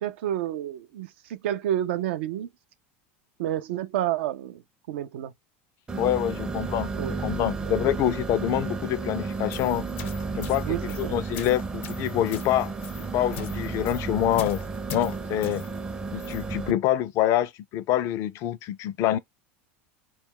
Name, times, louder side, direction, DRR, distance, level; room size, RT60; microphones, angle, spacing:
voice 1, 0.0-2.5 3.4-4.6 4.9-5.3 7.0-7.2 7.6-7.8 10.7-11.2, right 12 dB, 80° right, 0.4 m, -29 dB
sound 1, 5.9-16.7, right 4 dB, 15° right, 0.4 m, -33 dB
voice 2, 6.0-9.8 10.4-12.7 13.1-14.6 14.9-15.6 16.1-19.2, left 12 dB, 50° left, 0.3 m, -26 dB
sound 2, 9.3-16.5, left 9 dB, 80° left, 0.7 m, -43 dB
2.2 x 2.2 x 3.5 m
supercardioid pair, 105°, 6 cm